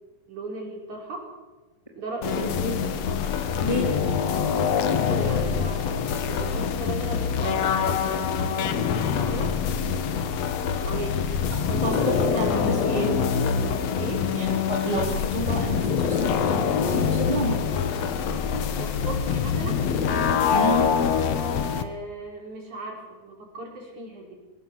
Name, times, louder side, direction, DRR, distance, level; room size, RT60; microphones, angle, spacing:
voice 1, 0.3-1.3 2.0-2.6 5.1-9.6 10.8-11.3 11.7-12.7 14.0-14.3 18.8-19.8 21.7-24.3, right 2 dB, 50° right, -1 dB, 6.3 m, -37 dB
sound 1, 2.2-21.8, left 6 dB, 60° left, 1.8 m, -25 dB
voice 2, 2.4-2.7 3.6-4.0 11.8-13.2 14.3-17.6 20.5-20.9, equal, 10° left, 0 dB, 3.0 m, -29 dB
25.5 x 17.0 x 7.6 m, 1.2 s
omnidirectional pair, 4.5 m